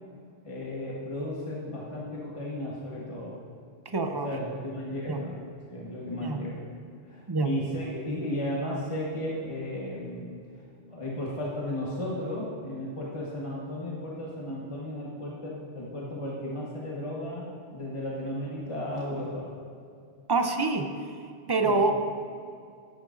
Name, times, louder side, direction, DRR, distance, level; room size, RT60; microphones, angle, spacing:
voice 1, 0.4-3.3 4.1-5.3 5.7-6.6 7.1-10.3 10.9-19.5 21.6-21.8, left 1 dB, 30° left, -5 dB, 1.3 m, -34 dB
voice 2, 3.9-4.3 5.1-5.2 6.2-6.4 7.3-7.5 20.3-20.9 21.5-21.9, right 3 dB, 30° right, 6 dB, 0.4 m, -25 dB
13.5 x 11.5 x 2.6 m, 2.3 s
omnidirectional pair, 1.2 m